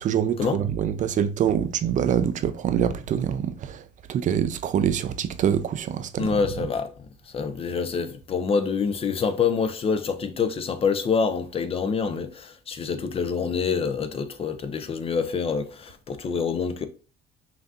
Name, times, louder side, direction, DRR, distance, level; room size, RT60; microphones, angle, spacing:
voice 1, 0.0-6.4, right 9 dB, 50° right, 0.4 m, -25 dB
voice 2, 6.2-16.9, left 5 dB, 35° left, 0.5 m, -26 dB
5.7 x 2.7 x 2.4 m
cardioid pair, 110°, 17 cm